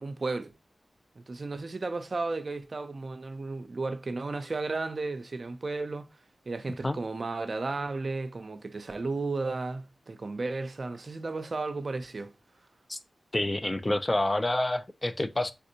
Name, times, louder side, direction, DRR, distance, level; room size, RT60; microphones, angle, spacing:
voice 1, 0.0-0.5 1.2-6.1 6.5-12.3, right 3 dB, 55° right, 0.4 m, -34 dB
voice 2, 13.3-15.5, left 1 dB, 25° left, 0.4 m, -28 dB
3.5 x 2.5 x 2.7 m
cardioid pair, 55°, 0 cm